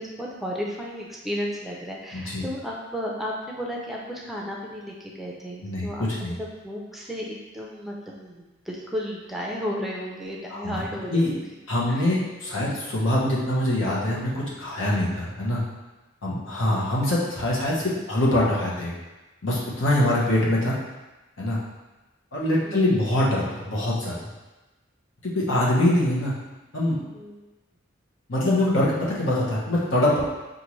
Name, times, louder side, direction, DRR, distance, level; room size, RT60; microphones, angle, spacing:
voice 1, 0.0-11.3 11.9-12.0 16.4-16.9 20.0-20.3 22.6-22.8 27.1-27.3, equal, ahead, -3 dB, 0.4 m, -34 dB
voice 2, 2.1-2.4 5.6-6.4 10.5-10.8 11.1-11.3 11.7-15.6 16.2-18.9 19.4-20.8 21.4-21.6 22.3-24.2 25.2-26.3 26.7-27.0 28.3-30.2, left 1 dB, 80° left, -5 dB, 1.1 m, -24 dB
5.5 x 2.6 x 3.1 m, 1.1 s
head